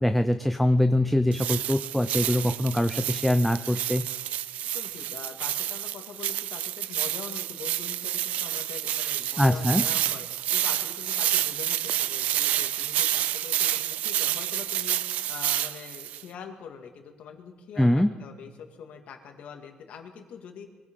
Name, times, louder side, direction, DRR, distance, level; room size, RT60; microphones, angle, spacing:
voice 1, 0.0-4.1 9.4-9.8 17.8-18.2, left 1 dB, 5° left, 8 dB, 0.6 m, -23 dB
sound 1, 1.3-16.2, right 12 dB, 75° right, 0.5 m, -29 dB
voice 2, 4.7-10.3 10.5-20.7, left 6 dB, 65° left, 4 dB, 2.1 m, -43 dB
23.0 x 16.0 x 3.8 m, 1.4 s
cardioid pair, 105°, 2 cm